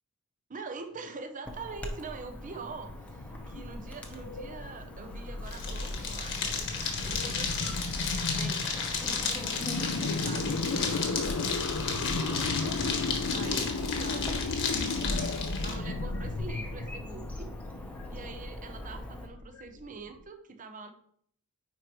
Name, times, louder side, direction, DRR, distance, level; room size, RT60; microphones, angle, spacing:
voice 1, 0.5-7.8 8.3-11.3 11.8-13.0 13.3-14.4 15.0-17.5 18.1-20.9, right 4 dB, 35° right, 7 dB, 0.7 m, -44 dB
Chirp tweet / Buzz, 1.4-19.3, equal, 5° left, 0.8 m, -43 dB
sound 1, 2.4-20.2, left 3 dB, 85° left, 0.5 m, -35 dB
sound 2, 5.4-15.7, left 5 dB, 55° left, 1.4 m, -33 dB
9.5 x 4.5 x 3.1 m, 0.65 s
head